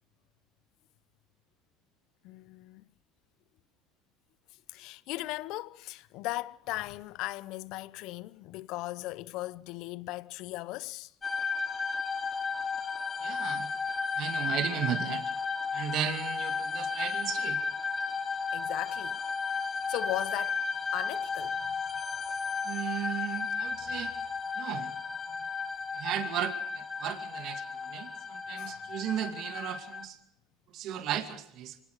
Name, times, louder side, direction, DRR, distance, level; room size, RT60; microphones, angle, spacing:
voice 1, 2.2-2.8 4.7-11.1 18.5-19.2 19.9-20.6 20.9-22.0 23.9-24.0 25.3-25.5 28.6-28.8, left 18 dB, 65° left, 0.8 m, -38 dB
sound 1, 11.2-30.0, left 5 dB, 25° left, 3.1 m, -34 dB
voice 2, 13.2-13.7 14.2-15.3 15.7-17.6 22.6-24.1 24.6-24.9 25.9-30.2 30.7-31.8, right 10 dB, 55° right, 2.3 m, -35 dB
24.5 x 18.5 x 6.6 m
hypercardioid pair, 85°, 0 cm